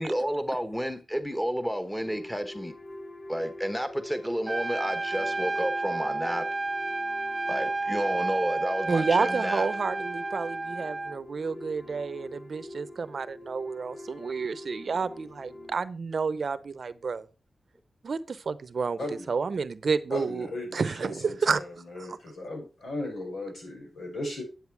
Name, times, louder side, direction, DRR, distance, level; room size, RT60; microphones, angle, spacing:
voice 1, 0.0-2.7 3.3-6.4 7.5-9.7, equal, 5° left, 1.2 m, -31 dB
sound 1, 2.0-15.8, left 1 dB, 75° left, 2.0 m, -44 dB
Trumpet, 4.5-11.2, right 3 dB, 25° right, 0.8 m, -31 dB
voice 2, 8.9-17.3 18.0-19.0 19.3-20.5 20.7-21.6 22.0-22.2, right 5 dB, 60° right, 0.8 m, -30 dB
voice 3, 20.1-24.4, left 1 dB, 90° left, 6.3 m, -36 dB
10.0 x 7.9 x 4.7 m
wide cardioid pair, 105°, 0 cm